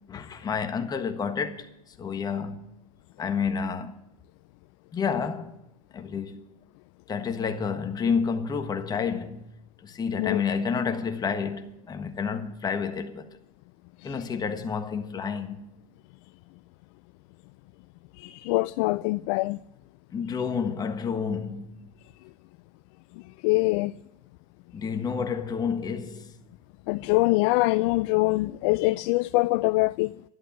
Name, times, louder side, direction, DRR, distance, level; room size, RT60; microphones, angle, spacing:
voice 1, 0.1-1.7 2.0-2.7 3.2-4.0 4.9-5.6 5.9-6.4 7.1-9.5 9.8-13.3 14.0-15.6 20.1-21.7 24.7-26.3, left 6 dB, 20° left, 1.4 m, -29 dB
voice 2, 18.2-19.6 23.4-23.9 26.9-30.1, left 22 dB, 50° left, 0.4 m, -24 dB
11.5 x 11.5 x 7.0 m
hypercardioid pair, 115°, 19 cm